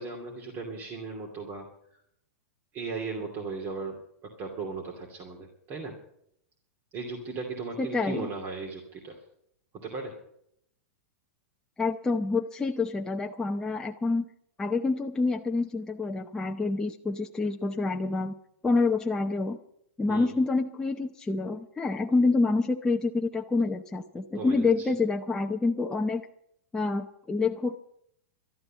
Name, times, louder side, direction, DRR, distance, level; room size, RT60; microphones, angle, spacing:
voice 1, 0.0-1.7 2.7-4.0 4.2-6.0 6.9-9.2 9.8-10.2 20.1-20.3 24.3-24.9, right 4 dB, 30° right, 0 dB, 2.6 m, -37 dB
voice 2, 7.8-8.3 11.8-14.2 14.6-18.3 18.6-19.6 20.0-26.2 26.7-27.8, left 3 dB, 10° left, 2 dB, 0.7 m, -27 dB
12.5 x 11.5 x 7.4 m, 0.72 s
hypercardioid pair, 145°, 8 cm